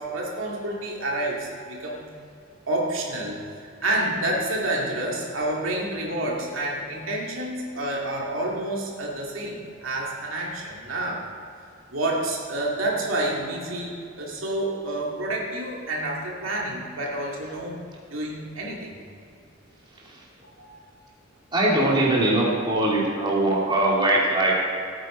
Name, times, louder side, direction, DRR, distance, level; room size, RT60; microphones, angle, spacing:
voice 1, 0.0-2.0 2.7-3.4 3.8-11.3 11.9-17.8 18.1-19.0 20.6-20.8, right 1 dB, 75° right, -2 dB, 2.3 m, -29 dB
voice 2, 21.5-24.5, right 1 dB, 25° right, -5 dB, 2.7 m, -21 dB
17.5 x 9.0 x 4.4 m, 2.5 s
head